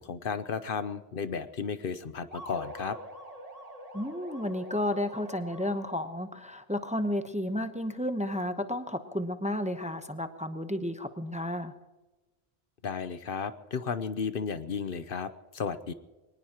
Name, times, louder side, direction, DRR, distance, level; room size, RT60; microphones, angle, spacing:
voice 1, 0.0-3.0 12.8-15.9, left 6 dB, 60° left, 12 dB, 0.9 m, -34 dB
sound 1, 2.3-6.2, equal, 35° right, 2.0 m, -45 dB
voice 2, 3.9-11.7, left 1 dB, 5° right, 8 dB, 0.8 m, -32 dB
23.5 x 19.5 x 2.9 m, 1.2 s
omnidirectional pair, 1.0 m